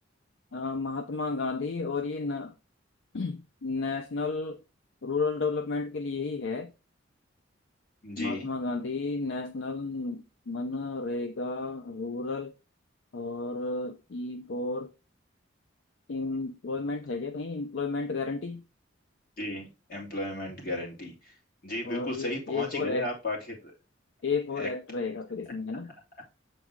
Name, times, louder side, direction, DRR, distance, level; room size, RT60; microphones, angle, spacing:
voice 1, 0.5-2.5 3.1-4.6 5.0-6.7 8.2-12.5 13.1-14.9 16.1-18.6 21.8-23.1 24.2-25.9, left 3 dB, 65° left, 0.5 m, -32 dB
voice 2, 8.0-8.5 19.4-21.3 21.6-23.7 24.6-24.7, left 1 dB, 45° left, 2.6 m, -34 dB
7.4 x 4.0 x 3.6 m
head